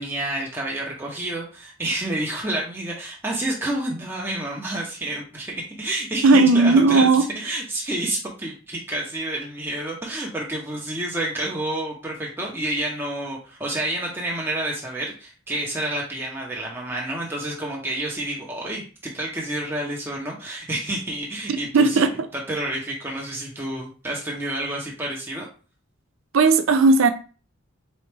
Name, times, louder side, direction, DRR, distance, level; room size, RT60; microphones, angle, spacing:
voice 1, 0.0-7.1 7.3-25.5, right 1 dB, 10° right, 0.8 m, -29 dB
voice 2, 6.2-7.2 21.7-22.3 26.3-27.1, right 3 dB, 70° right, 0.5 m, -16 dB
4.1 x 3.1 x 3.3 m
head